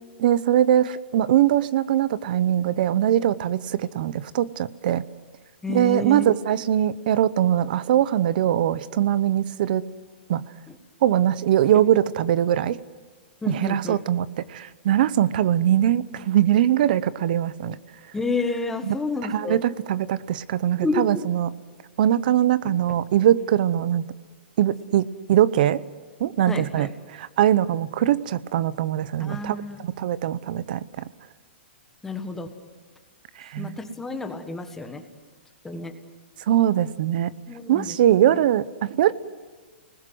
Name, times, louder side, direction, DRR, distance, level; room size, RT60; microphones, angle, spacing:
voice 1, 0.2-5.0 5.7-9.8 10.3-10.4 11.0-12.8 13.5-17.8 18.8-19.0 19.3-21.5 22.0-24.0 24.6-25.8 26.2-29.6 29.8-31.0 33.4-33.8 36.5-37.3 37.7-39.1, right 11 dB, 50° right, 18 dB, 0.8 m, -22 dB
voice 2, 5.6-6.3 10.7-10.8 13.4-14.0 18.1-19.6 20.8-21.2 26.5-26.9 29.2-29.8 32.0-32.5 33.6-35.0 35.6-35.9 37.5-37.9 38.3-38.4, left 3 dB, 5° left, 6 dB, 1.5 m, -29 dB
30.0 x 20.0 x 7.9 m, 1.4 s
hypercardioid pair, 160°, 6 cm